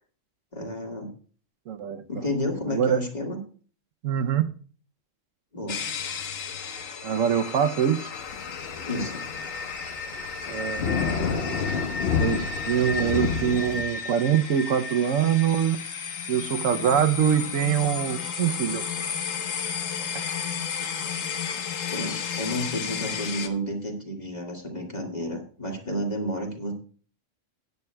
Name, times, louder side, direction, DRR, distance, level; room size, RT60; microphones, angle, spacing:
voice 1, 0.5-1.1 2.1-3.4 5.5-5.9 8.9-9.2 21.9-26.7, equal, 35° left, 0 dB, 2.1 m, -31 dB
voice 2, 1.7-2.0 2.7-3.0 4.0-4.5 7.0-8.1 10.5-11.8 12.2-15.8 16.3-18.9, right 9 dB, 85° right, 11 dB, 1.1 m, -24 dB
sound 1, 5.7-23.5, left 6 dB, 85° left, 1.3 m, -33 dB
sound 2, 8.1-13.8, left 6 dB, 55° left, 1.0 m, -30 dB
17.5 x 9.2 x 2.2 m, 0.41 s
omnidirectional pair, 1.3 m